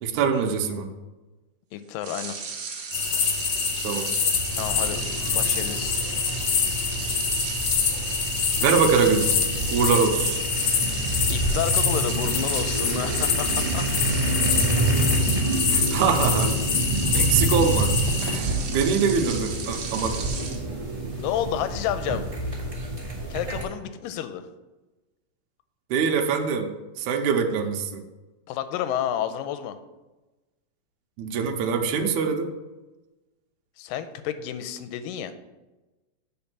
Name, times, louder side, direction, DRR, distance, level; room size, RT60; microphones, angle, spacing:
voice 1, 0.0-0.9 3.8-4.1 7.0-7.8 8.6-9.4 9.7-10.4 15.7-16.6 17.1-17.9 18.2-20.1 25.9-28.0 31.2-32.5, right 6 dB, 75° right, 3 dB, 2.0 m, -24 dB
voice 2, 1.7-2.4 4.6-5.0 5.3-6.0 11.3-13.9 21.1-22.3 23.3-24.5 28.5-29.8 33.8-35.3, left 10 dB, 90° left, 11 dB, 2.3 m, -30 dB
sound 1, 2.0-20.6, right 5 dB, 60° right, 1.8 m, -35 dB
sound 2, 2.9-18.4, left 6 dB, 65° left, 1.7 m, -26 dB
sound 3, 4.5-23.6, right 2 dB, 15° right, 1.5 m, -28 dB
8.7 x 4.4 x 5.9 m, 1.1 s
omnidirectional pair, 3.8 m